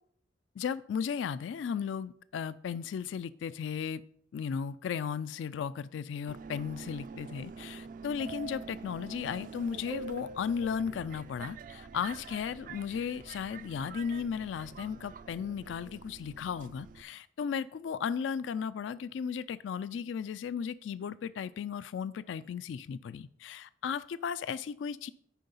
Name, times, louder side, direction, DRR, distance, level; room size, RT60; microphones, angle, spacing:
voice 1, 0.6-4.0 4.3-25.1, left 7 dB, 70° left, 0.3 m, -35 dB
Subway metro underground, 6.3-17.0, right 4 dB, 45° right, 0.4 m, -46 dB
9.2 x 4.8 x 5.4 m
head